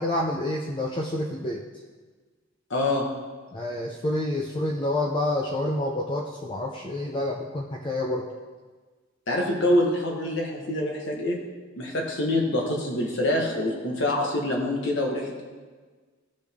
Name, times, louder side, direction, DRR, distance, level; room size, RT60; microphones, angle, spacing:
voice 1, 0.0-1.6 3.5-8.3, left 1 dB, 25° left, -1 dB, 0.5 m, -28 dB
voice 2, 2.7-3.1 9.3-11.4 11.8-15.4, left 1 dB, 60° left, -1 dB, 1.2 m, -25 dB
13.5 x 5.1 x 3.5 m, 1.4 s
head